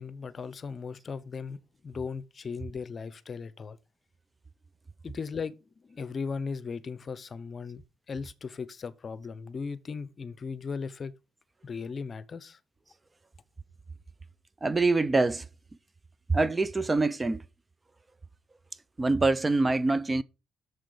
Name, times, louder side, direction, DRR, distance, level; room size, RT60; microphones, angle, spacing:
voice 1, 0.0-3.8 5.0-5.6 5.8-11.1 11.6-12.6, left 5 dB, 45° left, 0.7 m, -37 dB
voice 2, 14.6-15.4 16.3-17.4 19.0-20.2, right 3 dB, 20° right, 0.5 m, -25 dB
7.3 x 6.9 x 5.1 m
cardioid pair, 90°, 0 cm